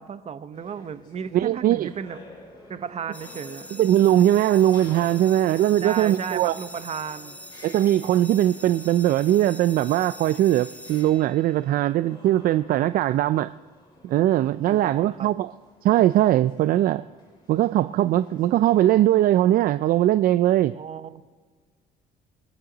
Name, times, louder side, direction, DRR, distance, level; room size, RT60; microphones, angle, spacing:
voice 1, 0.0-2.2 2.7-3.7 5.8-7.4 14.7-15.3 20.7-21.2, right 7 dB, 40° right, 12 dB, 0.9 m, -34 dB
sound 1, 0.5-18.9, left 2 dB, 25° left, 5.3 m, -50 dB
voice 2, 1.3-1.9 3.7-6.5 7.6-13.5 14.0-15.5 15.8-17.0 17.5-20.7, right 13 dB, 60° right, 14 dB, 0.4 m, -20 dB
sound 2, 3.1-11.8, equal, 10° left, 1.1 m, -44 dB
28.0 x 9.7 x 4.0 m, 1.5 s
cardioid pair, 110°, 17 cm